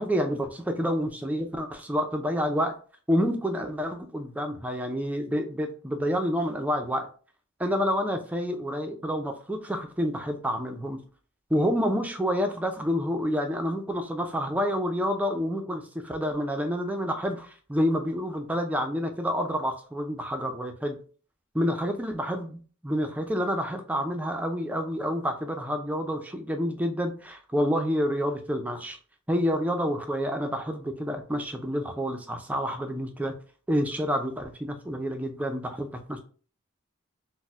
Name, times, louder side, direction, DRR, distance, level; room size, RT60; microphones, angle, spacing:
voice 1, 0.0-2.7 3.1-7.1 7.6-11.0 11.5-21.0 21.5-29.0 29.3-33.3 33.7-36.2, equal, 5° right, 5 dB, 0.3 m, -28 dB
4.1 x 2.0 x 2.4 m, 0.40 s
head